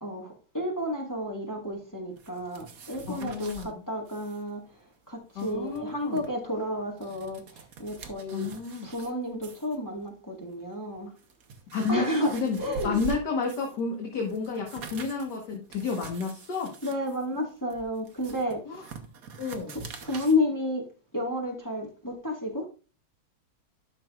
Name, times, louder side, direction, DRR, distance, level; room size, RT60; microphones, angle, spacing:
voice 1, 0.0-8.5 8.8-11.1 11.9-12.3 12.6-13.0 16.8-18.9 19.7-20.9 21.1-22.6, left 1 dB, 10° left, 1.5 m, -31 dB
sound 1, 2.2-3.7 4.1-4.4 4.7-4.8 5.2-6.3 6.8-9.1 9.4-9.8 10.5-10.6 11.1-13.8 14.2-20.4, right 5 dB, 50° right, 1.3 m, -44 dB
voice 2, 3.1-3.8 5.4-6.2 8.3-8.9 11.7-16.7 18.7-18.8 19.4-19.7, left 4 dB, 55° left, 1.9 m, -31 dB
12.0 x 5.9 x 2.4 m
omnidirectional pair, 2.4 m